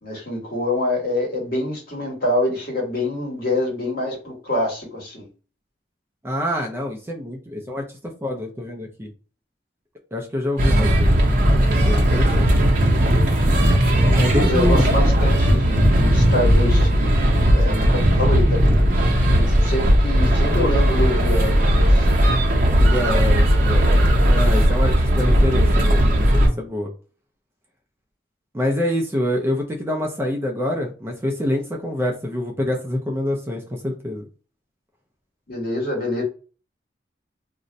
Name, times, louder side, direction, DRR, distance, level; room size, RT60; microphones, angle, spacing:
voice 1, 0.0-5.3 14.4-17.2 17.5-22.1 35.5-36.2, left 1 dB, 55° left, 1.2 m, -26 dB
voice 2, 6.2-9.1 10.1-11.3 11.5-12.5 14.1-14.8 22.8-26.9 28.5-34.2, left 1 dB, 15° right, 0.4 m, -26 dB
sound 1, 10.6-26.5, equal, 45° right, 0.6 m, -17 dB
2.5 x 2.1 x 3.8 m
head